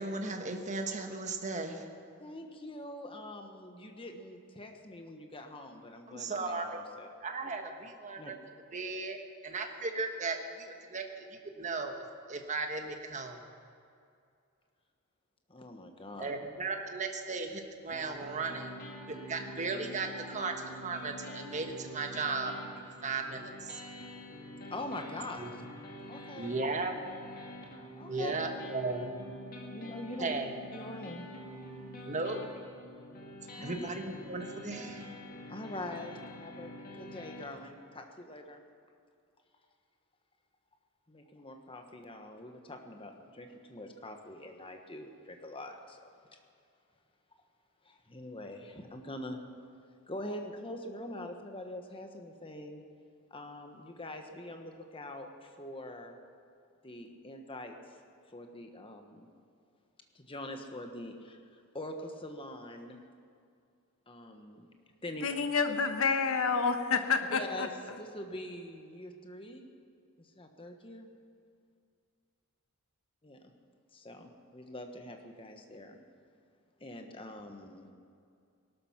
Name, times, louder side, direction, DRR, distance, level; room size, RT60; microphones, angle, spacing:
voice 1, 0.0-1.8 6.1-6.8 7.2-8.4 8.7-11.2 11.6-13.4 16.2-18.8 19.1-22.5 23.0-23.8 25.4-25.5 26.3-26.9 28.1-29.1 30.2-30.5 32.0-32.4 33.6-35.1, right 3 dB, 35° right, 4 dB, 1.4 m, -36 dB
voice 2, 2.2-7.1 8.2-8.3 15.5-16.4 24.7-25.6 26.1-26.5 27.9-28.5 29.7-30.4 30.7-31.2 33.4-33.8 35.5-38.6 41.1-46.4 47.8-49.4 50.1-52.8 53.3-56.1 56.8-57.7 58.3-59.3 60.1-63.0 64.1-64.7 65.0-65.3 67.3-67.7 68.0-69.6 70.2-71.1 73.2-73.5 73.9-76.0 76.8-77.9, left 1 dB, 25° left, 4 dB, 1.3 m, -44 dB
sound 1, 17.9-37.5, equal, 40° left, 2.0 m, -46 dB
voice 3, 65.2-67.7, left 5 dB, 65° left, 7 dB, 1.2 m, -29 dB
19.0 x 12.0 x 5.9 m, 2.4 s
head